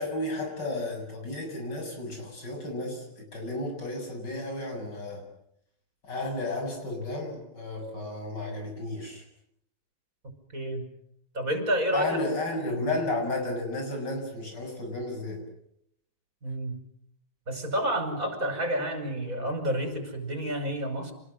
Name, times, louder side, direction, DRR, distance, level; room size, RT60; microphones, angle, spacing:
voice 1, 0.0-5.2 6.0-9.2 11.9-15.4, left 2 dB, 70° left, 2 dB, 7.7 m, -33 dB
voice 2, 10.5-10.8 11.3-12.2 16.4-16.8 17.5-21.1, right 1 dB, 45° right, 6 dB, 6.0 m, -29 dB
28.5 x 20.5 x 7.6 m, 0.73 s
omnidirectional pair, 1.9 m